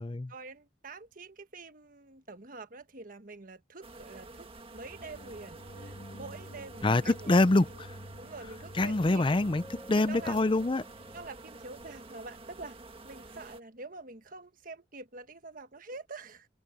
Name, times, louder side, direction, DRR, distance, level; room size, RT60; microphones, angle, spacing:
voice 1, 0.3-7.4 8.2-9.3 9.9-10.4 11.1-12.8 13.0-16.5, right 3 dB, 50° right, 1.4 m, -46 dB
sound 1, 3.8-13.6, right 2 dB, 30° right, 1.6 m, -49 dB
sound 2, 4.8-12.0, equal, 50° left, 2.7 m, -50 dB
voice 2, 6.8-7.9 8.8-9.6 9.9-10.8, left 2 dB, 30° left, 0.5 m, -25 dB
sound 3, 9.5-14.4, equal, 10° left, 6.4 m, -56 dB
head